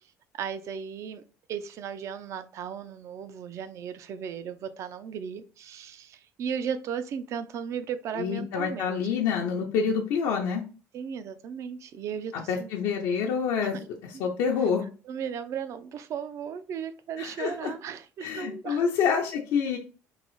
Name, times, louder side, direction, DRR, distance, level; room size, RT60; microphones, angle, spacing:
voice 1, 0.3-1.2 1.5-9.0 10.9-12.7 13.6-13.9 14.1-14.2 15.1-18.8, right 7 dB, 55° right, 12 dB, 0.4 m, -36 dB
voice 2, 8.2-10.6 12.5-13.8 14.0-14.8 17.2-17.7 18.2-19.8, left 6 dB, 85° left, -1 dB, 0.6 m, -27 dB
3.8 x 2.0 x 3.0 m, 0.36 s
cardioid pair, 115°, 6 cm